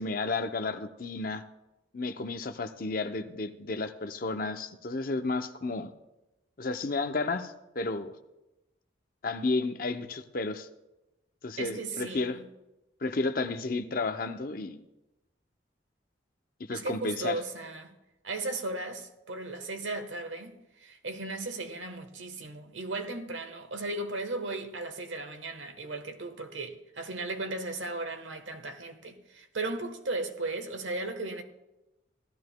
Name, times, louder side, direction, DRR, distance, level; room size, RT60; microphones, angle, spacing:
voice 1, 0.0-1.4 1.9-5.9 6.6-8.1 9.2-10.7 11.4-12.4 13.0-14.8 16.6-17.4, left 3 dB, 50° left, 0.6 m, -32 dB
voice 2, 11.6-12.5 16.7-17.9 18.2-31.4, right 2 dB, 85° right, 1.2 m, -36 dB
16.0 x 12.5 x 2.2 m
head